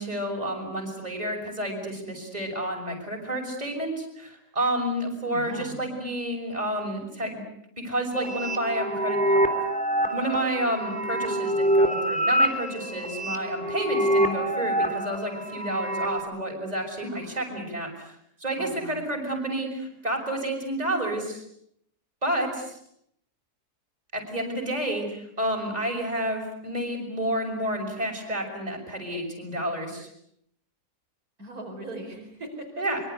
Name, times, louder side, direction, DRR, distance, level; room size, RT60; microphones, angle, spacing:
voice 1, 0.0-7.4 7.8-9.4 10.1-18.1 18.4-21.4 22.2-22.8 24.1-30.1 32.8-33.0, right 1 dB, 25° right, 1 dB, 6.3 m, -30 dB
voice 2, 5.2-5.8 17.0-17.5 18.6-19.1 31.4-32.8, right 1 dB, 60° right, 1 dB, 5.3 m, -40 dB
sound 1, 8.1-16.2, right 1 dB, 5° left, 3.2 m, -26 dB
25.5 x 24.5 x 8.2 m, 0.72 s
omnidirectional pair, 1.7 m